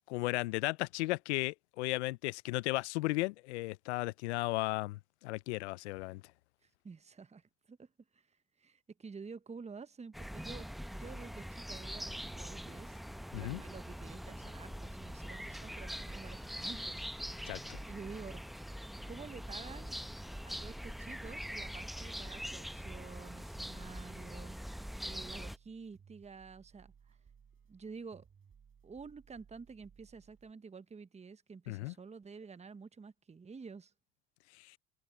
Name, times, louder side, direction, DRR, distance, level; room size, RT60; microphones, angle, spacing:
voice 1, 0.1-6.2 13.3-13.6 17.5-17.8 31.7-31.9 34.6-34.7, left 21 dB, 85° left, 0.6 m, -35 dB
voice 2, 6.6-7.9 8.1-8.3 8.6-13.0 13.3-17.1 17.9-18.5 19.0-20.0 20.4-24.6 25.0-27.2 27.7-28.3 28.8-33.9, right 5 dB, 20° right, 1.0 m, -50 dB
sound 1, 10.1-25.6, equal, ahead, 0.8 m, -43 dB
sound 2, 12.2-30.5, right 7 dB, 40° right, 6.3 m, -62 dB
hypercardioid pair, 70°, 33 cm